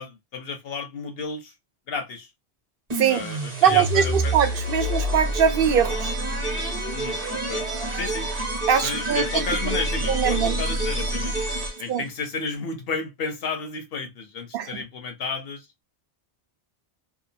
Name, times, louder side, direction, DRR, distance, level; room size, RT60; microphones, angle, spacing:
voice 1, 0.0-1.5 1.9-2.3 3.1-4.3 6.9-7.6 7.9-8.3 8.8-11.3 11.8-15.7, left 4 dB, 65° left, 0.8 m, -32 dB
sound 1, 2.9-12.0, right 1 dB, 35° right, 0.9 m, -28 dB
voice 2, 3.6-6.1 8.7-9.4 10.1-10.6 11.9-12.0 14.5-14.7, right 8 dB, 65° right, 0.7 m, -21 dB
2.8 x 2.3 x 2.6 m
omnidirectional pair, 1.1 m